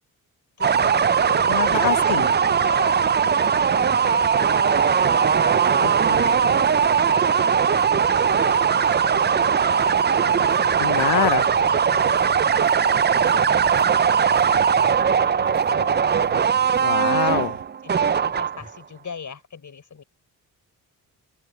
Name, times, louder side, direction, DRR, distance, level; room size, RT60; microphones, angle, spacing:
voice 1, 0.6-2.0 2.5-3.1 3.7-11.3 11.6-12.8 13.2-17.5 17.8-20.0, left 6 dB, 50° left, 4.3 m, -41 dB
sound 1, 0.6-18.8, right 7 dB, 25° right, 0.5 m, -19 dB
sound 2, 0.6-17.6, right 11 dB, 85° right, 6.9 m, -42 dB
sound 3, 0.9-1.6 3.6-4.4 6.8-7.1 8.3-8.5 9.9-10.1 11.5-11.8 13.9-16.3 18.0-18.7, left 2 dB, 20° left, 6.3 m, -50 dB
voice 2, 1.5-2.3 5.8-6.3 10.8-11.4 16.8-17.5, left 16 dB, 75° left, 0.5 m, -25 dB
open air
cardioid pair, 70°, 39 cm